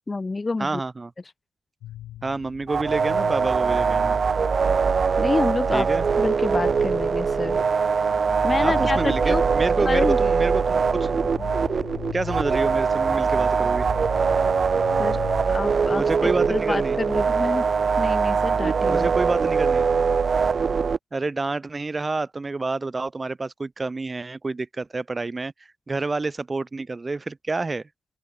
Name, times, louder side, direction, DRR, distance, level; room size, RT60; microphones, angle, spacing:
voice 1, 0.1-0.8 5.2-5.9 6.2-7.6 8.4-9.4 9.9-10.2 11.4-11.5 15.0-15.2 15.5-16.0 16.5-17.7 18.0-19.1, left 3 dB, 25° left, 1.8 m, -27 dB
voice 2, 0.6-1.1 2.2-4.2 5.7-6.0 8.6-11.1 12.1-13.9 15.9-17.0 18.9-19.8 21.1-25.5 25.9-27.8, right 3 dB, 25° right, 2.1 m, -28 dB
sound 1, 1.8-15.9, left 13 dB, 85° left, 7.0 m, -40 dB
sound 2, 2.7-21.0, right 5 dB, 40° right, 2.3 m, -22 dB
open air
cardioid pair, 90°, 0 cm